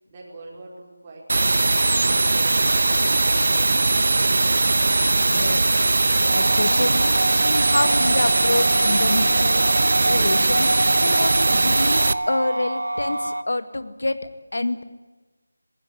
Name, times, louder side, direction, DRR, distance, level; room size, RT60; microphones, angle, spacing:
voice 1, 0.0-4.1, right 2 dB, 20° right, -3 dB, 4.9 m, -45 dB
sound 1, 1.3-12.1, right 2 dB, 55° right, 1.0 m, -20 dB
voice 2, 5.1-5.9 6.3-14.2 14.5-14.8, left 2 dB, 70° left, 11 dB, 2.2 m, -27 dB
sound 2, 6.3-13.4, right 1 dB, 85° right, 1.3 m, -27 dB
20.0 x 19.0 x 9.8 m, 1.2 s
figure-of-eight pair, 170°, 0 cm